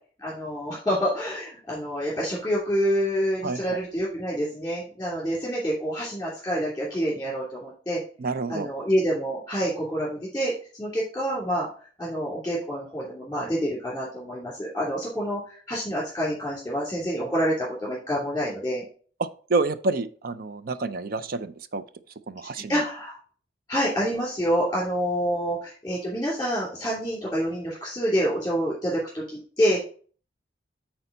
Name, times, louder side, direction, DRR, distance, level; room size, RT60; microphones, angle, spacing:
voice 1, 0.2-8.0 8.5-10.5 10.8-11.7 12.0-15.4 15.7-18.8 22.5-23.2 23.7-29.8, equal, 10° left, -5 dB, 2.8 m, -27 dB
voice 2, 3.4-3.8 8.2-8.7 19.2-21.8 22.3-22.8, right 3 dB, 50° right, 12 dB, 0.5 m, -28 dB
8.6 x 4.4 x 3.9 m, 0.42 s
head